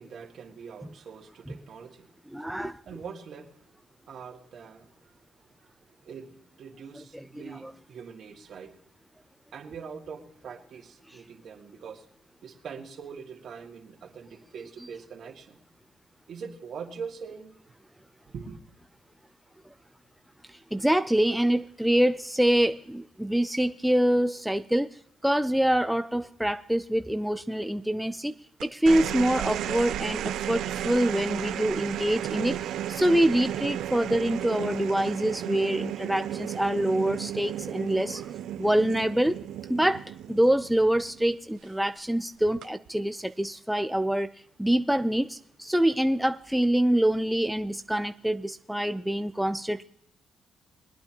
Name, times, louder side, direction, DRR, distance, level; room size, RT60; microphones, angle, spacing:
voice 1, 0.0-2.5 2.9-3.7 4.1-5.1 5.4-5.7 6.0-8.8 9.5-12.1 12.4-15.6 16.3-17.5 18.2-18.6, right 6 dB, 60° right, 2 dB, 2.2 m, -43 dB
voice 2, 2.3-2.8 7.1-7.7 20.5-28.3 28.6-38.3 38.6-39.4 39.7-44.3 44.6-49.8, right 1 dB, 5° right, 9 dB, 0.4 m, -25 dB
sound 1, 28.6-41.2 42.4-42.9, right 11 dB, 80° right, 0.5 m, -33 dB
22.5 x 9.4 x 3.0 m, 0.75 s
cardioid pair, 90°, 0 cm